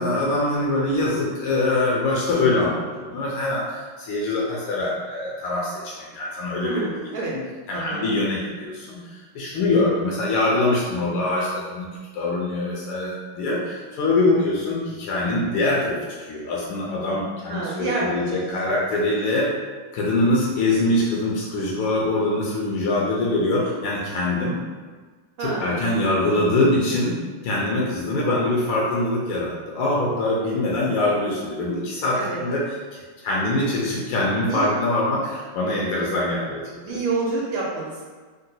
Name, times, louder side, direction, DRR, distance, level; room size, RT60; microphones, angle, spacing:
voice 1, 0.0-6.9 7.7-9.0 9.3-19.5 19.9-24.6 25.4-27.2 27.4-32.6 33.2-36.6, left 2 dB, 80° left, -4 dB, 1.4 m, -23 dB
voice 2, 6.6-7.3 7.7-8.1 17.5-18.4 25.4-25.9 32.1-32.4 34.5-34.7 36.8-38.0, right 3 dB, 75° right, -4 dB, 1.3 m, -28 dB
3.8 x 2.2 x 2.7 m, 1.4 s
omnidirectional pair, 2.3 m